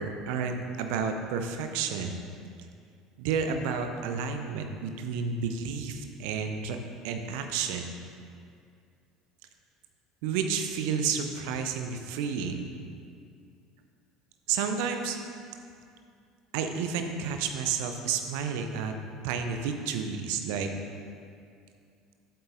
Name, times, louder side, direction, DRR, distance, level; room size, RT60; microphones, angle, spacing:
voice 1, 0.0-2.2 3.2-6.8 7.0-8.0 10.2-12.9 14.5-15.2 16.5-18.9 19.2-20.7, right 6 dB, 60° right, 6 dB, 0.6 m, -31 dB
10.5 x 7.9 x 2.6 m, 2.3 s
figure-of-eight pair, 65°, 0 cm